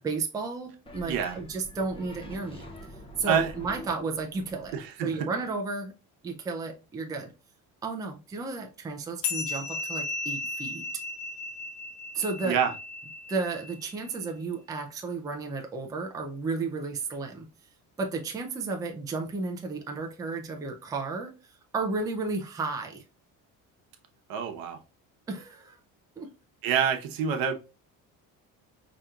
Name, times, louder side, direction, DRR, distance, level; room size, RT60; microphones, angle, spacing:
voice 1, 0.0-2.7 3.2-4.8 5.0-5.9 6.2-7.3 7.8-10.9 12.1-12.6 13.3-17.5 18.0-21.4 21.7-23.0 25.3-25.8 26.2-26.3, right 4 dB, 10° right, 0.4 m, -33 dB
sound 1, 0.9-4.9, equal, 15° left, 0.7 m, -45 dB
voice 2, 1.1-1.4 3.3-3.5 4.7-5.1 12.4-12.7 24.3-24.8 26.6-27.5, right 8 dB, 70° right, 0.9 m, -26 dB
sound 2, 9.2-14.1, left 3 dB, 65° left, 1.0 m, -35 dB
4.9 x 2.9 x 2.3 m
cardioid pair, 160°, 35 cm